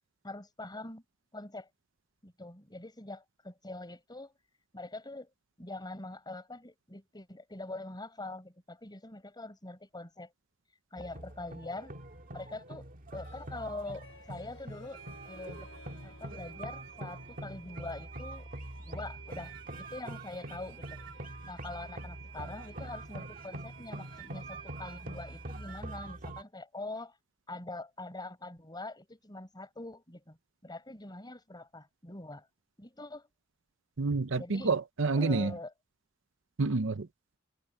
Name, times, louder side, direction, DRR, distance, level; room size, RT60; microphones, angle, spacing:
voice 1, 0.2-1.0 1.3-1.7 2.2-4.3 4.7-5.3 5.6-10.3 10.9-12.0 12.3-15.7 16.0-18.5 18.8-21.0 21.4-27.2 27.5-30.4 30.6-32.5 32.8-33.3 34.3-34.7 35.1-35.7, left 2 dB, 20° left, 5.2 m, -44 dB
sound 1, 11.0-26.4, right 1 dB, 45° right, 1.8 m, -44 dB
Harp, 13.1-18.7, left 3 dB, 70° left, 4.8 m, -58 dB
sound 2, 13.7-13.8 13.9-14.0 14.4-14.5 14.9-25.6, right 8 dB, 85° right, 7.0 m, -53 dB
voice 2, 34.0-35.5 36.6-37.1, right 3 dB, 70° right, 0.8 m, -28 dB
head